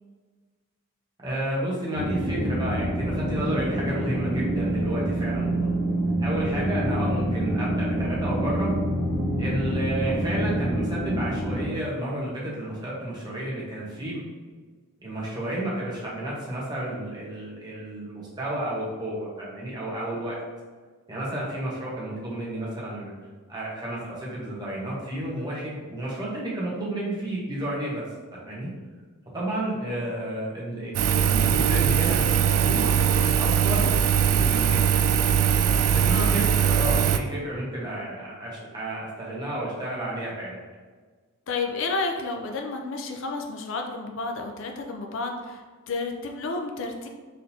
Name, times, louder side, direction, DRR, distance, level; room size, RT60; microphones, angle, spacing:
voice 1, 1.2-5.7 6.2-8.7 9.4-14.2 15.0-20.4 21.1-23.1 23.5-28.0 28.3-28.7 29.3-32.9 33.4-34.9 35.9-40.6, right 1 dB, 20° right, -6 dB, 1.0 m, -31 dB
sound 1, 1.9-11.7, right 1 dB, 35° left, 1.5 m, -26 dB
Engine, 30.9-37.2, right 8 dB, 80° right, 0.3 m, -21 dB
voice 2, 36.1-36.4 41.5-47.1, left 3 dB, 60° left, 2 dB, 0.4 m, -31 dB
4.3 x 3.7 x 2.7 m, 1.4 s
head